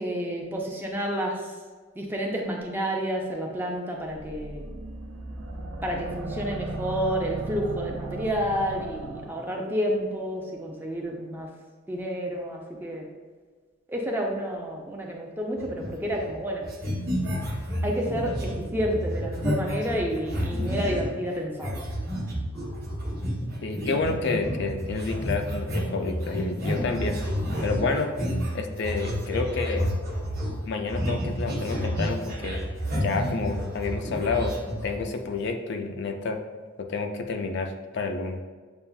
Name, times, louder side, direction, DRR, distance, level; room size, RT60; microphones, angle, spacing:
voice 1, 0.0-1.4 2.0-4.6 5.8-11.5 11.9-13.1 13.9-16.6 17.8-21.8, equal, 10° right, -1 dB, 0.4 m, -30 dB
sound 1, 4.1-9.6, right 2 dB, 65° right, 0.5 m, -36 dB
sound 2, 15.6-16.4 16.6-21.1 21.6-35.3, equal, 45° right, 1.0 m, -30 dB
voice 2, 23.6-27.2 27.6-28.1 28.5-29.9 30.6-32.6 32.9-34.5 34.8-36.4 36.8-38.4, left 4 dB, 55° left, 5 dB, 0.3 m, -29 dB
6.9 x 2.3 x 2.2 m, 1.4 s
head